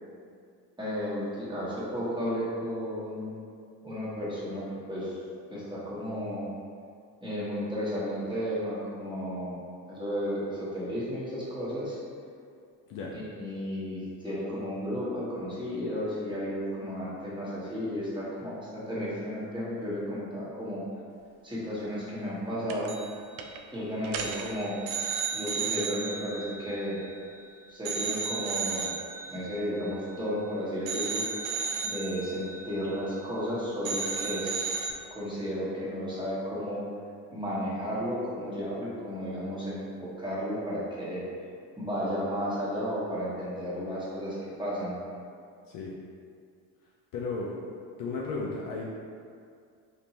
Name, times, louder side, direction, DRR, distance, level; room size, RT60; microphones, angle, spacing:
voice 1, 0.8-3.5 3.8-5.2 5.5-6.5 7.2-9.6 9.9-12.0 13.1-20.8 21.4-23.0 23.7-24.8 25.3-27.0 27.7-28.9 29.3-31.6 31.8-34.8 35.1-36.8 37.3-41.2 41.8-45.0, equal, 10° right, -8 dB, 1.2 m, -33 dB
sound 1, 22.7-23.1 23.4-23.6 24.0-27.4 27.9-30.5 30.9-33.5 33.8-34.9, right 5 dB, 65° right, 0.5 m, -34 dB
voice 2, 47.1-47.6 48.0-48.9, left 3 dB, 45° left, -4 dB, 0.6 m, -34 dB
3.5 x 2.8 x 2.8 m, 2.2 s
hypercardioid pair, 70°, 48 cm